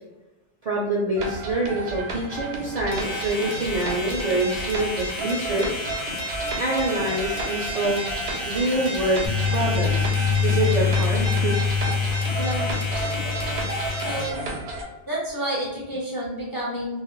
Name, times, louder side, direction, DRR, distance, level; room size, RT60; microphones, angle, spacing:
voice 1, 0.6-5.9 6.6-8.1 8.5-9.3 9.5-10.1 10.4-11.5, right 1 dB, 60° right, -3 dB, 0.4 m, -26 dB
sound 1, 1.2-14.8, right 2 dB, 85° right, 0.9 m, -32 dB
sound 2, 2.9-14.3, left 1 dB, 60° left, 0.8 m, -32 dB
sound 3, 9.3-14.2, left 6 dB, 85° left, 0.9 m, -25 dB
voice 2, 12.3-13.2 14.0-14.4 15.1-17.0, right 1 dB, 30° left, -5 dB, 0.4 m, -30 dB
2.3 x 2.0 x 2.9 m, 1.0 s
omnidirectional pair, 1.1 m